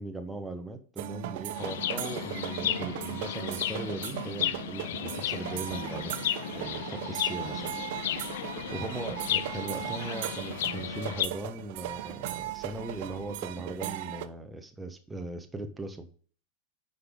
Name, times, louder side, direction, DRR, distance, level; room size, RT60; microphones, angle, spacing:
voice 1, 0.0-6.1 6.5-8.2 8.7-16.1, right 2 dB, 10° right, 5 dB, 1.2 m, -39 dB
sound 1, 1.0-14.3, right 14 dB, 50° right, 0.6 m, -37 dB
Chirp tweet, 1.6-11.3, left 12 dB, 55° left, 0.4 m, -34 dB
9.6 x 5.6 x 3.7 m, 0.42 s
figure-of-eight pair, 90°, 0 cm